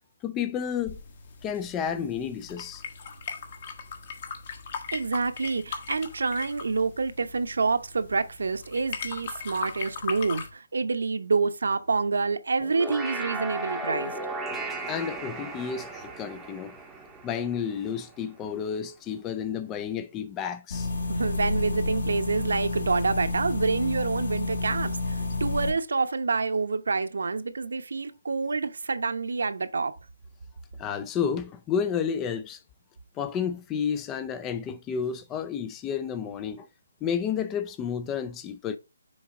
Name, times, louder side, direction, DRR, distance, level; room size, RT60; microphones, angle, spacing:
voice 1, 0.2-1.0 1.4-2.8 14.9-16.7 17.2-20.9 30.8-32.6 33.2-36.7 37.0-38.8, left 7 dB, 15° left, 0.3 m, -31 dB
sound 1, 0.8-10.5, left 6 dB, 35° left, 1.1 m, -39 dB
voice 2, 4.9-14.1 21.1-29.9, right 4 dB, 75° right, 0.8 m, -27 dB
sound 2, 12.6-18.1, right 2 dB, 5° right, 0.7 m, -36 dB
sound 3, 20.7-25.7, left 3 dB, 65° left, 2.2 m, -30 dB
6.4 x 4.1 x 3.7 m
hypercardioid pair, 165°, 0 cm